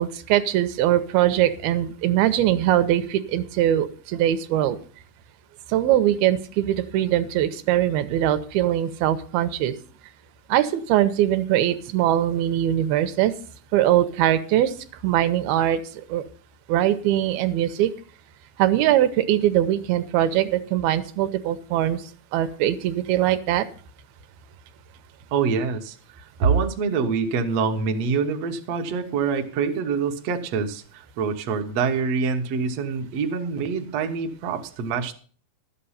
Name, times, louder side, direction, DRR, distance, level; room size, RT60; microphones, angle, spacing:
voice 1, 0.0-4.8 5.7-9.8 10.5-13.3 13.7-14.7 15.0-16.2 16.7-17.9 18.6-22.0 22.3-23.7, right 12 dB, 85° right, 10 dB, 2.7 m, -21 dB
voice 2, 25.3-35.1, right 5 dB, 65° right, 5 dB, 1.6 m, -25 dB
12.0 x 8.3 x 5.6 m, 0.43 s
omnidirectional pair, 4.3 m